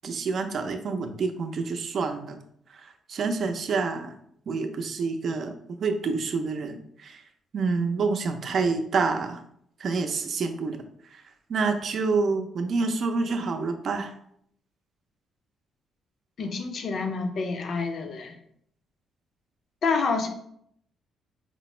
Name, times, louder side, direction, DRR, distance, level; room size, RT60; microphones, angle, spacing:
voice 1, 0.0-2.4 2.8-4.1 4.5-7.2 7.5-9.4 9.8-10.8 11.1-11.2 11.5-14.1, right 4 dB, 55° right, 5 dB, 0.5 m, -28 dB
voice 2, 16.4-18.4 19.8-20.3, left 4 dB, 60° left, 5 dB, 0.6 m, -28 dB
4.4 x 2.0 x 4.3 m, 0.69 s
cardioid pair, 90°, 0 cm